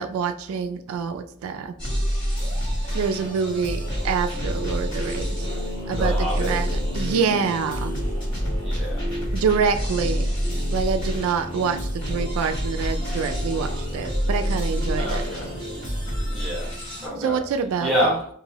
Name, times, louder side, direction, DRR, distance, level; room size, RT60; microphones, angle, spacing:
voice 1, 0.0-1.7 2.9-5.5 5.9-7.9 9.3-10.4 10.7-11.8 12.1-15.2 17.2-18.1, right 6 dB, 80° right, 0.3 m, -26 dB
sound 1, 1.8-17.1, equal, 25° left, 1.4 m, -27 dB
voice 2, 5.9-6.6 8.6-9.1 15.0-15.5 16.3-17.4 17.8-18.3, equal, ahead, 1.2 m, -27 dB
2.9 x 2.5 x 2.8 m
head